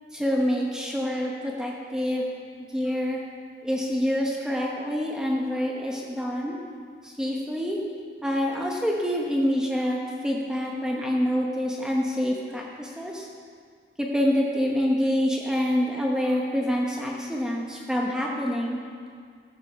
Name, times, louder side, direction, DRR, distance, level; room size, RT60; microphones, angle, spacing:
voice 1, 0.1-2.3 2.7-3.2 3.6-6.6 7.0-7.8 8.2-13.3 14.0-18.8, equal, 5° right, -2 dB, 1.0 m, -26 dB
13.5 x 5.3 x 6.5 m, 2.1 s
head